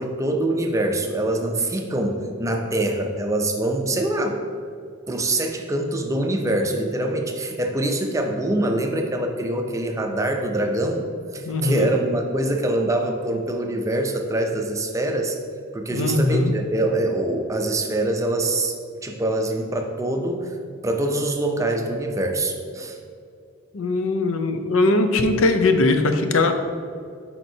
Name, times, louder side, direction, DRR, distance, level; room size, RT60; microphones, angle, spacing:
voice 1, 0.0-4.4 5.1-11.1 11.3-15.4 15.7-18.7 19.0-20.5 20.8-23.0, right 1 dB, 15° right, 3 dB, 0.5 m, -24 dB
voice 2, 11.5-11.9 15.9-16.5 23.7-26.5, left 2 dB, 70° left, 7 dB, 0.5 m, -20 dB
10.5 x 4.2 x 2.7 m, 2.4 s
head